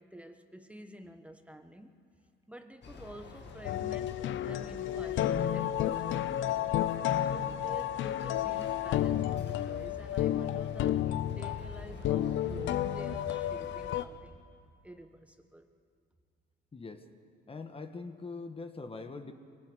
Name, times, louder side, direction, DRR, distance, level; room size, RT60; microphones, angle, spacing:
voice 1, 0.0-2.0 2.5-6.6 7.3-14.4 14.8-15.7, right 1 dB, 5° right, 6 dB, 1.3 m, -49 dB
sound 1, 2.8-14.1, left 3 dB, 60° left, 2.2 m, -47 dB
sound 2, 3.6-14.0, left 11 dB, 80° left, 0.6 m, -31 dB
voice 2, 16.7-17.0 17.5-19.3, left 3 dB, 30° left, 7 dB, 1.3 m, -42 dB
22.5 x 17.5 x 8.0 m, 2.2 s
cardioid pair, 90°, 20 cm